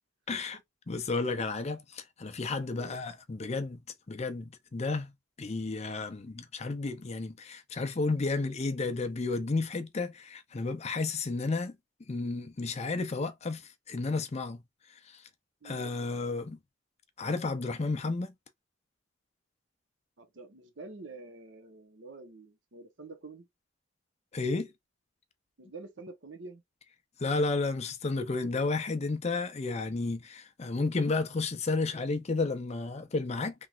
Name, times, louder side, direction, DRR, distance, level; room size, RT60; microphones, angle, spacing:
voice 1, 0.3-0.6 0.9-3.8 4.1-5.1 5.4-11.8 12.1-13.6 13.9-14.6 15.6-16.6 17.2-18.3 24.3-24.7 27.2-33.5, left 3 dB, 35° left, 0.5 m, -32 dB
voice 2, 15.6-15.9 20.2-23.5 25.6-26.6, right 3 dB, 65° right, 0.9 m, -47 dB
3.2 x 2.9 x 2.4 m
head